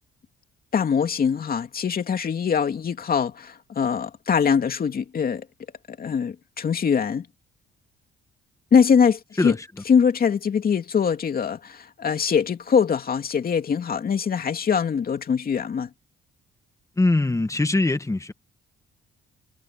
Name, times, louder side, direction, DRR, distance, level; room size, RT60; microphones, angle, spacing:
voice 1, 0.7-5.4 5.9-7.3 8.7-9.5 9.9-15.9, left 6 dB, 50° left, 2.7 m, -22 dB
voice 2, 17.0-18.3, left 2 dB, 15° left, 1.7 m, -22 dB
cardioid pair, 90°, 20 cm